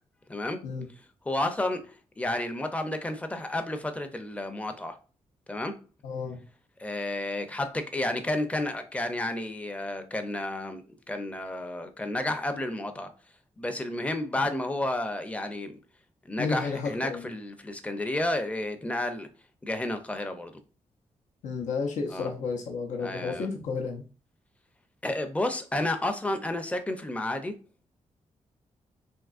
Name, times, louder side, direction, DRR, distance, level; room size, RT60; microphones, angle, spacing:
voice 1, 1.3-5.0 5.5-5.7 6.8-13.1 13.6-15.8 16.3-19.3 19.6-20.5 22.1-22.3 23.0-23.5 25.0-27.5, left 1 dB, 10° left, 0.4 m, -31 dB
voice 2, 6.0-6.4 16.4-17.3 21.4-24.0, left 4 dB, 90° left, 0.6 m, -32 dB
3.5 x 2.9 x 2.4 m
cardioid pair, 100°, 12 cm